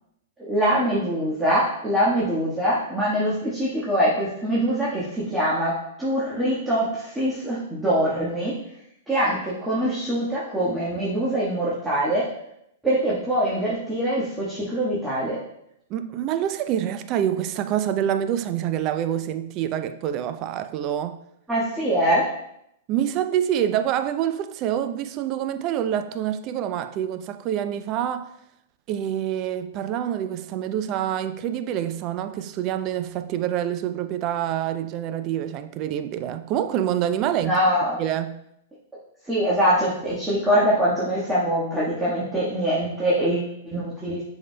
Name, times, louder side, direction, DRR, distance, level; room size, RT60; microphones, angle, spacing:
voice 1, 0.4-8.5 9.1-12.3 12.8-15.4 21.5-22.3 37.4-38.0 39.2-44.2, equal, 10° right, 1.5 m, -23 dB
voice 2, 15.9-21.2 22.9-28.3 28.9-37.6 38.0-38.4, right 10 dB, 40° right, 0.5 m, -26 dB
7.6 x 5.5 x 2.2 m
figure-of-eight pair, 110°, 0 cm